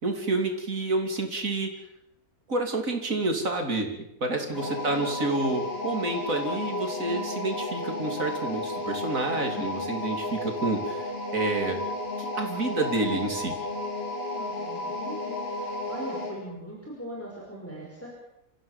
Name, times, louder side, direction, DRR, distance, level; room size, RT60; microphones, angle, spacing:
voice 1, 0.0-1.7 2.5-3.9 4.2-11.8 12.2-13.5, right 2 dB, 65° right, 4 dB, 3.6 m, -29 dB
voice 2, 4.3-4.6 14.4-18.2, equal, 10° left, -4 dB, 5.1 m, -41 dB
sound 1, 4.5-16.4, left 2 dB, 45° left, 3.6 m, -33 dB
28.5 x 15.5 x 7.3 m, 0.84 s
omnidirectional pair, 1.5 m